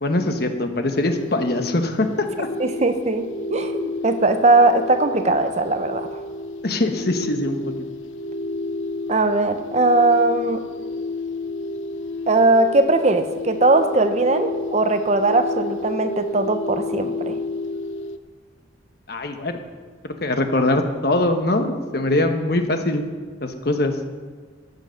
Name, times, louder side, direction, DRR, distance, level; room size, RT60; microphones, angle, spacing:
voice 1, 0.0-2.1 2.4-2.5 6.6-7.6 19.1-19.6 20.2-23.0 23.4-23.9, left 2 dB, 55° left, 6 dB, 1.1 m, -22 dB
sound 1, 0.9-18.2, left 2 dB, 80° left, 0.7 m, -31 dB
voice 2, 2.6-6.2 9.1-10.6 12.3-17.4, right 2 dB, 35° right, 8 dB, 0.7 m, -19 dB
13.5 x 8.0 x 6.5 m, 1.5 s
head